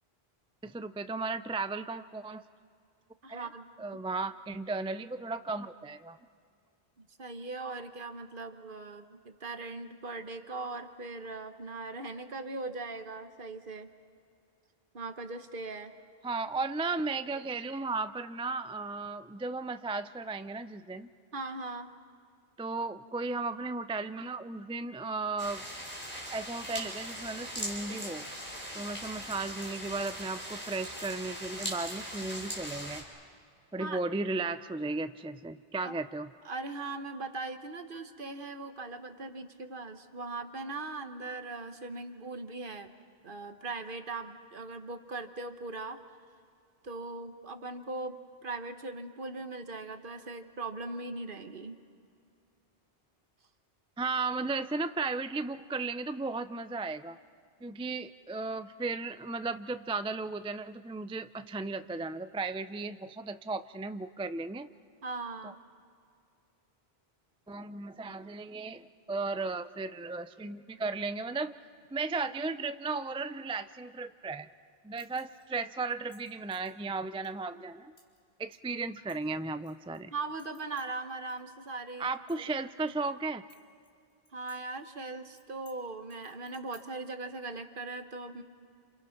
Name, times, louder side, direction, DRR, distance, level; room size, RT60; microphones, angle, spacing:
voice 1, 0.6-2.4 3.3-3.5 3.8-6.2 16.2-21.1 22.6-25.6 26.3-28.3 28.7-33.0 33.7-36.3 54.0-57.2 57.6-64.7 65.4-65.5 67.5-71.5 71.9-74.5 74.8-77.9 78.4-80.1 82.0-83.5, right 3 dB, 10° right, 11 dB, 0.3 m, -35 dB
voice 2, 3.2-3.7 3.9-4.0 7.0-13.9 14.9-15.9 21.3-21.9 33.8-34.0 35.8-35.9 36.4-42.9 43.2-46.0 46.8-51.8 65.0-65.6 80.1-82.1 84.3-88.4, right 3 dB, 55° right, 8 dB, 1.4 m, -40 dB
sound 1, 25.4-33.0, equal, 10° left, 4.4 m, -40 dB
sound 2, 74.9-75.5 75.9-76.7 77.2-77.3 78.0-78.2 78.5-80.0 80.4-81.4 81.7-81.8 82.1-83.1 83.5-84.6 84.8-84.9 85.3-85.8 86.1-87.1, equal, 60° left, 3.8 m, -61 dB
29.5 x 28.0 x 5.9 m, 2.3 s
omnidirectional pair, 1.0 m